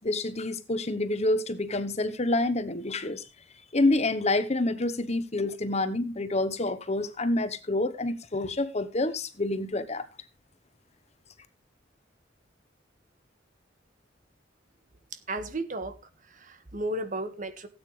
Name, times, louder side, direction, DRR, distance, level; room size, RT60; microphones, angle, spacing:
voice 1, 0.0-3.2 3.7-10.1, left 2 dB, 35° left, 1.1 m, -28 dB
voice 2, 15.1-16.0 16.3-17.7, right 1 dB, 45° right, 1.7 m, -34 dB
17.0 x 9.0 x 3.3 m
head